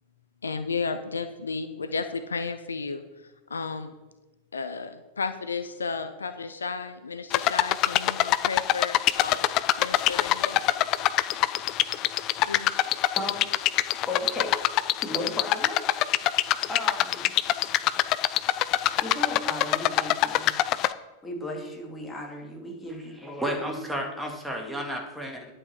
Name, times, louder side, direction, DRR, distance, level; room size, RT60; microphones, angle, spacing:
voice 1, 0.4-3.0 3.5-3.9 4.5-10.6 12.4-12.8, left 4 dB, 75° left, 10 dB, 0.6 m, -33 dB
sound 1, 7.3-20.9, left 14 dB, 40° left, 0.4 m, -24 dB
voice 2, 13.1-13.5 14.0-14.7 15.0-15.8 16.7-17.3 19.0-20.6 21.2-23.8, left 1 dB, 10° left, 0 dB, 2.7 m, -35 dB
voice 3, 23.2-25.5, equal, 5° right, 1 dB, 2.1 m, -32 dB
11.0 x 7.7 x 4.7 m, 1.1 s
figure-of-eight pair, 90°, 0 cm